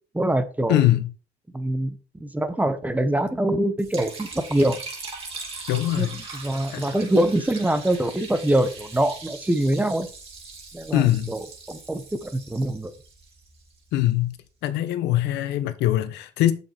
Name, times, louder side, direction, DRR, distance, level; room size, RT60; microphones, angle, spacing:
voice 1, 0.1-0.9 1.5-2.0 2.2-4.8 6.0-10.1 10.7-11.4 11.7-12.9, right 1 dB, 10° right, 1.1 m, -24 dB
voice 2, 0.7-1.1 5.7-6.2 6.7-6.9 10.9-11.3 13.9-14.4 14.6-16.5, left 14 dB, 85° left, 1.1 m, -22 dB
Liquid, 3.8-14.0, right 4 dB, 35° right, 3.7 m, -40 dB
7.5 x 7.3 x 4.5 m
cardioid pair, 110°, 17 cm